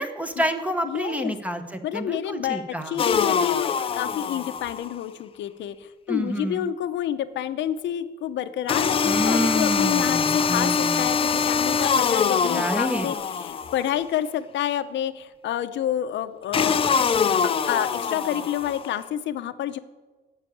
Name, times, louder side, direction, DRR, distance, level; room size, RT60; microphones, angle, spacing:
voice 1, 0.0-3.0 6.1-6.7 9.0-11.0 12.5-13.1, equal, 5° right, 8 dB, 1.0 m, -28 dB
voice 2, 0.8-1.3 1.8-19.8, left 11 dB, 80° left, 11 dB, 0.8 m, -29 dB
sound 1, 3.0-4.9 8.7-14.0 16.5-18.9, left 6 dB, 30° left, 0.5 m, -24 dB
11.5 x 8.3 x 8.5 m, 1.3 s
cardioid pair, 170°, 18 cm